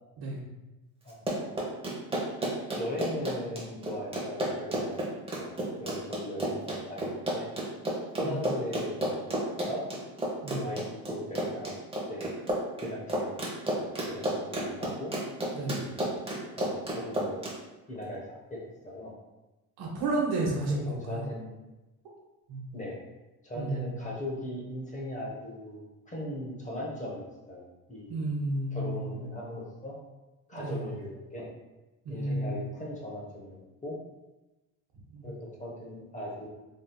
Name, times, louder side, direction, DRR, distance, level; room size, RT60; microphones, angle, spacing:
voice 1, 1.0-1.6 2.8-4.9 5.4-7.5 8.2-9.9 10.5-11.8 12.1-12.4 12.8-15.1 16.6-17.5 17.9-19.1 20.7-21.5 22.7-23.0 23.4-28.2 28.7-30.0 30.5-31.5 32.1-34.0 35.2-36.5, left 1 dB, 20° left, -3 dB, 0.8 m, -39 dB
Run, 1.1-17.5, right 1 dB, 15° right, 0.9 m, -31 dB
voice 2, 19.8-21.3 22.5-22.8 23.5-24.1 28.1-29.2 30.5-31.0 32.0-32.7 35.1-35.3, right 2 dB, 60° right, -2 dB, 1.1 m, -32 dB
3.5 x 2.6 x 2.3 m, 1.1 s
supercardioid pair, 90°, 42 cm